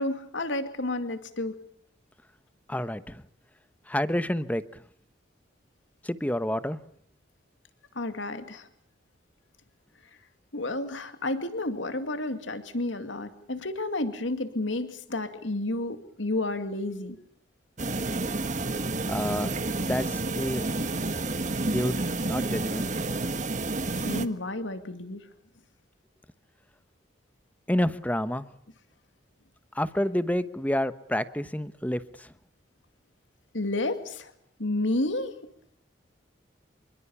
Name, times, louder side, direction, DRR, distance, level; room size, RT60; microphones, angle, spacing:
voice 1, 0.0-1.5 8.0-8.7 10.5-17.2 24.1-25.2 33.5-34.3 34.6-35.3, left 2 dB, 80° left, 9 dB, 2.4 m, -31 dB
voice 2, 2.7-3.2 3.9-4.8 6.0-6.8 19.0-20.8 21.7-22.0 22.3-22.9 27.7-28.5 29.7-32.3, left 1 dB, 10° left, 13 dB, 1.0 m, -29 dB
sound 1, 17.8-24.3, right 2 dB, 40° right, 1.5 m, -30 dB
27.5 x 23.0 x 7.1 m, 0.67 s
head